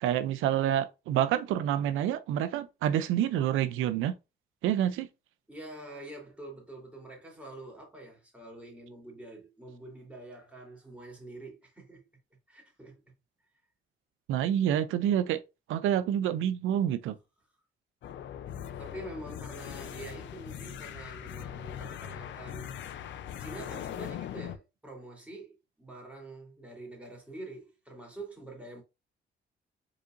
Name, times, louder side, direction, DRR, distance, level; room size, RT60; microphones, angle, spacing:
voice 1, 0.0-4.1 4.6-5.1 14.3-15.4 15.7-17.1, right 10 dB, 90° right, 0.5 m, -28 dB
voice 2, 5.5-12.0 12.5-13.1 18.5-22.7 23.3-28.8, right 2 dB, 5° right, 2.7 m, -46 dB
sound 1, 18.0-24.6, left 10 dB, 70° left, 0.6 m, -40 dB
4.9 x 4.1 x 2.5 m
cardioid pair, 90°, 20 cm